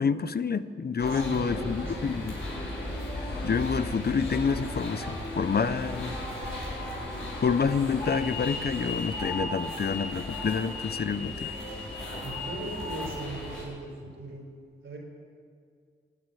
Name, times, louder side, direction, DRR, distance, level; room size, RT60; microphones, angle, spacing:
voice 1, 0.0-2.3 3.4-6.2 7.4-11.5, left 5 dB, 50° left, 14 dB, 0.7 m, -28 dB
sound 1, 1.0-13.6, left 1 dB, 85° left, 5.1 m, -35 dB
voice 2, 1.1-2.3 12.2-14.4 14.8-15.0, right 1 dB, 75° right, 1 dB, 4.4 m, -39 dB
16.0 x 9.1 x 9.8 m, 2.2 s
cardioid pair, 50°, 20 cm